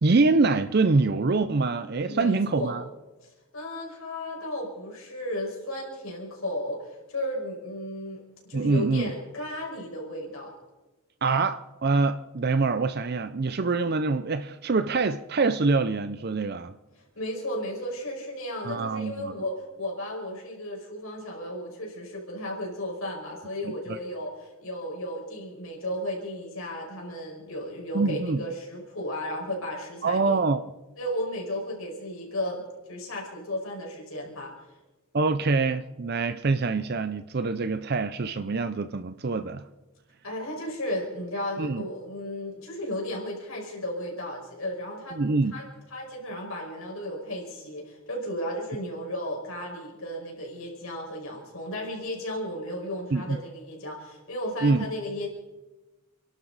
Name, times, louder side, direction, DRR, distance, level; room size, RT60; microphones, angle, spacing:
voice 1, 0.0-2.8 8.5-9.1 11.2-16.8 18.6-19.3 23.6-24.0 27.9-28.4 30.0-30.6 35.1-39.6 41.6-41.8 45.2-45.6 53.1-53.4 54.6-54.9, right 3 dB, 45° right, 12 dB, 0.5 m, -25 dB
voice 2, 2.1-2.8 3.2-10.5 17.2-30.4 31.0-34.5 40.2-45.2 45.5-55.3, left 1 dB, 70° left, -1 dB, 5.3 m, -34 dB
29.5 x 11.5 x 4.0 m, 1.1 s
head